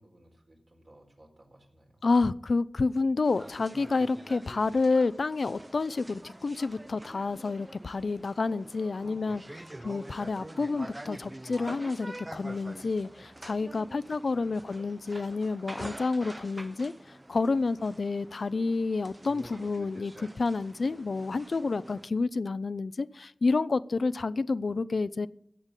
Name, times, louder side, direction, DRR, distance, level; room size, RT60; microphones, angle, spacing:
voice 1, 0.0-2.1 9.3-10.0 13.8-14.7 17.7-17.8, right 1 dB, 60° right, 0 dB, 4.4 m, -60 dB
voice 2, 2.0-9.4 9.8-25.3, left 3 dB, 80° left, 16 dB, 0.4 m, -29 dB
sound 1, 3.2-22.1, right 1 dB, 25° right, 0.5 m, -46 dB
17.0 x 6.8 x 7.4 m, 0.73 s
wide cardioid pair, 50°, 0 cm